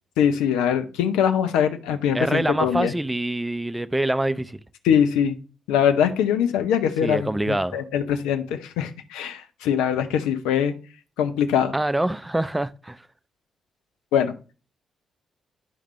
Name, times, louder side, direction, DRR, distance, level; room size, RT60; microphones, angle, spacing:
voice 1, 0.2-2.9 4.8-5.4 5.7-10.7 11.2-11.7 14.1-14.3, left 8 dB, 75° left, 0.7 m, -22 dB
voice 2, 2.1-4.6 7.0-7.8 11.7-13.0, right 1 dB, 15° right, 0.5 m, -25 dB
10.0 x 5.0 x 3.2 m
hypercardioid pair, 40°, 0 cm